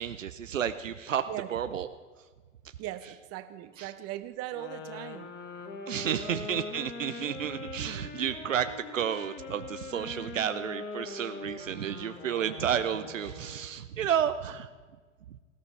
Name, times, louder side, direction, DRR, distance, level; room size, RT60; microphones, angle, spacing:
voice 1, 0.0-1.9 3.8-3.9 5.9-14.7, right 9 dB, 80° right, 10 dB, 0.7 m, -31 dB
voice 2, 2.8-5.3 5.9-6.2, right 13 dB, 40° right, 11 dB, 1.1 m, -39 dB
sound 1, 4.5-13.7, left 3 dB, 25° left, 2.0 m, -42 dB
19.5 x 16.5 x 3.4 m, 1.5 s
figure-of-eight pair, 85°, 38 cm